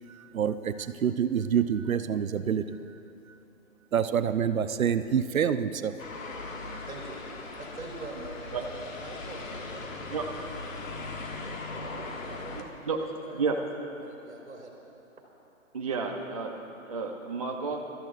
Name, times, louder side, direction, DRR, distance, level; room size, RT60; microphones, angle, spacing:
voice 1, 0.3-2.8 3.9-5.9, right 8 dB, 85° right, 11 dB, 0.8 m, -27 dB
sound 1, 6.0-12.6, left 3 dB, 70° left, 1.9 m, -39 dB
voice 2, 6.8-10.3 10.6-11.2 11.7-13.7 14.0-14.7, right 2 dB, 60° right, -3 dB, 3.0 m, -44 dB
voice 3, 12.6-13.1 13.3-13.6 15.7-16.6 16.8-17.9, right 4 dB, 25° right, 1 dB, 0.6 m, -31 dB
27.0 x 13.5 x 2.5 m, 2.7 s
hypercardioid pair, 165°, 41 cm